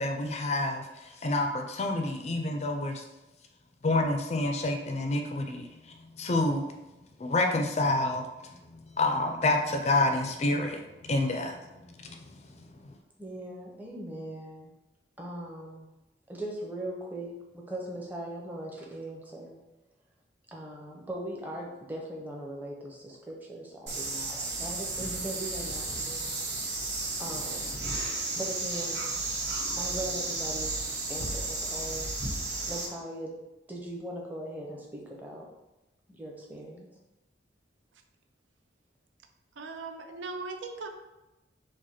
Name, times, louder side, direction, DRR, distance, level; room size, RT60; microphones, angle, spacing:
voice 1, 0.0-3.0 3.8-5.7 6.2-6.7 7.2-11.6 12.0-12.4, left 2 dB, 35° left, 4 dB, 0.4 m, -28 dB
voice 2, 13.2-14.7 15.2-15.9 16.3-19.6 20.5-27.8 28.4-29.1 29.8-30.7 31.1-32.1 32.6-33.4 33.7-35.5 36.1-36.9, right 1 dB, 10° right, -2 dB, 0.7 m, -40 dB
sound 1, 23.9-32.9, right 2 dB, 60° right, 1.1 m, -33 dB
voice 3, 39.6-40.9, right 3 dB, 80° right, 5 dB, 0.5 m, -38 dB
4.9 x 2.1 x 4.3 m, 1.0 s
head